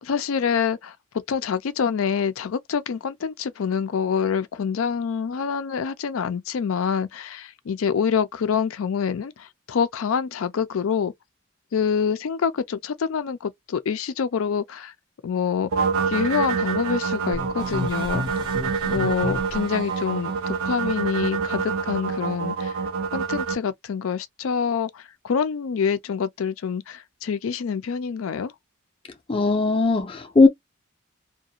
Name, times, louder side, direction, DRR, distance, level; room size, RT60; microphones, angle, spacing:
voice 1, 0.0-0.9 1.3-11.1 11.7-14.9 15.2-15.7 16.1-18.4 18.8-22.8 23.1-28.5, left 6 dB, 85° left, 0.4 m, -26 dB
sound 1, 15.7-23.6, right 5 dB, 85° right, 0.5 m, -26 dB
sound 2, 17.3-20.1, equal, 20° right, 0.6 m, -33 dB
voice 2, 29.3-30.5, left 3 dB, 25° left, 0.5 m, -18 dB
2.4 x 2.2 x 2.7 m
head